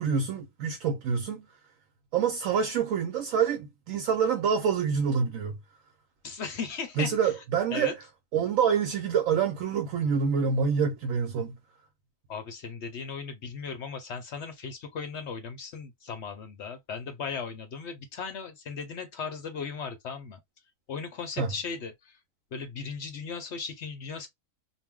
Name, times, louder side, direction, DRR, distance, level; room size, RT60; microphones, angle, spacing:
voice 1, 0.0-1.5 2.1-5.6 7.0-8.0 8.3-11.6 21.4-21.5, right 6 dB, 70° right, 0.9 m, -26 dB
voice 2, 6.2-7.3 7.7-7.9 12.3-20.4 20.9-22.2 22.5-24.3, left 5 dB, 60° left, 0.7 m, -37 dB
2.5 x 2.1 x 3.5 m
omnidirectional pair, 1.6 m